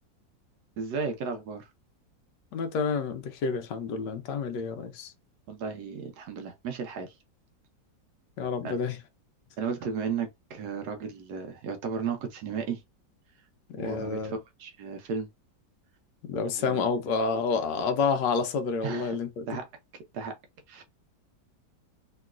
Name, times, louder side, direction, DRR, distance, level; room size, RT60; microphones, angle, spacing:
voice 1, 0.8-1.7 5.5-7.1 8.6-8.7 9.6-12.8 13.8-15.3 16.5-16.8 18.8-19.2 19.5-19.7 20.1-20.3 20.7-20.8, right 5 dB, 70° right, 1.1 m, -34 dB
voice 2, 2.5-5.1 8.4-9.0 13.7-14.3 16.2-19.4, left 5 dB, 75° left, 1.2 m, -29 dB
3.0 x 2.9 x 2.3 m
omnidirectional pair, 2.0 m